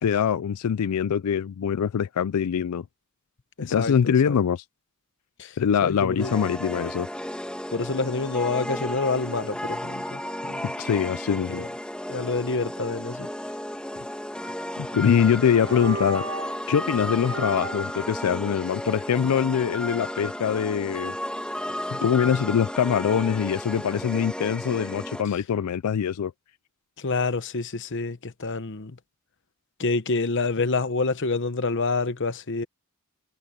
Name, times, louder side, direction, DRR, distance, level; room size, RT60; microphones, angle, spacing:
voice 1, 0.0-2.8 3.6-4.6 5.6-7.1 10.6-11.6 14.8-16.2 16.7-21.1 21.9-26.3, left 7 dB, 90° left, 0.4 m, -23 dB
voice 2, 3.6-4.4 5.4-6.3 7.7-10.6 11.6-11.7 12.1-13.3 27.0-29.0 29.8-32.7, left 3 dB, 55° left, 1.0 m, -27 dB
sound 1, 6.2-25.2, left 1 dB, 5° left, 2.3 m, -33 dB
sound 2, 14.8-15.1 15.5-16.6 17.2-18.0, right 2 dB, 60° right, 1.9 m, -34 dB
head